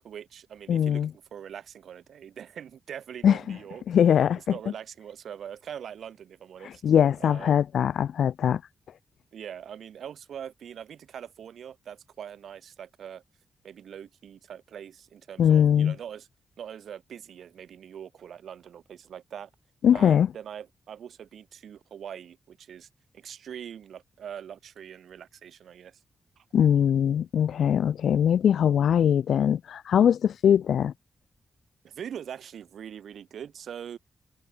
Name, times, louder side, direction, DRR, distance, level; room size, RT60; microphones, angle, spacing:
voice 1, 0.0-3.8 4.5-6.8 7.2-7.6 9.3-13.2 13.6-16.3 16.6-19.5 19.9-22.9 23.1-26.0 26.4-26.5 31.8-34.0, right 8 dB, 85° right, 3.8 m, -42 dB
voice 2, 0.7-1.1 3.2-3.6 3.9-4.4 6.6-8.6 15.4-15.9 19.8-20.3 26.5-30.9, left 9 dB, 90° left, 1.0 m, -21 dB
wide cardioid pair, 155°, 0 cm